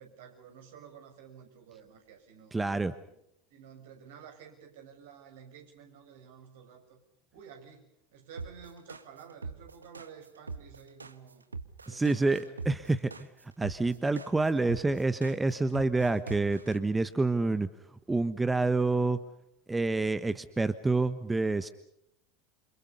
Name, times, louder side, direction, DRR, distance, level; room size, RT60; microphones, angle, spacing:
voice 1, 0.0-2.5 3.1-3.2 3.5-7.0 7.3-11.4 11.8-12.6, right 7 dB, 65° right, 4 dB, 6.6 m, -51 dB
voice 2, 2.5-2.9 11.9-13.3 13.6-17.7 18.1-19.2 19.7-21.7, right 3 dB, 10° right, 13 dB, 1.2 m, -28 dB
sound 1, 8.4-16.8, right 4 dB, 85° right, 1.2 m, -42 dB
29.5 x 27.0 x 5.5 m, 0.76 s
figure-of-eight pair, 75°, 0 cm